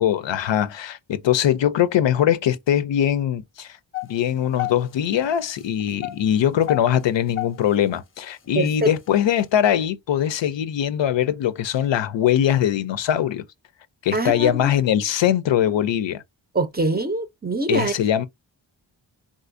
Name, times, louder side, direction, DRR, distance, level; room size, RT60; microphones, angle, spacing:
voice 1, 0.0-3.8 4.1-13.4 14.0-16.2 17.7-18.3, left 10 dB, 70° left, 0.5 m, -21 dB
sound 1, 3.9-5.2 5.7-7.9 8.4-8.6 9.1-9.3, left 18 dB, 25° left, 0.6 m, -30 dB
voice 2, 8.6-8.9 14.1-14.5 16.5-17.9, right 2 dB, 20° right, 0.5 m, -23 dB
3.8 x 2.5 x 2.5 m
wide cardioid pair, 75°, 46 cm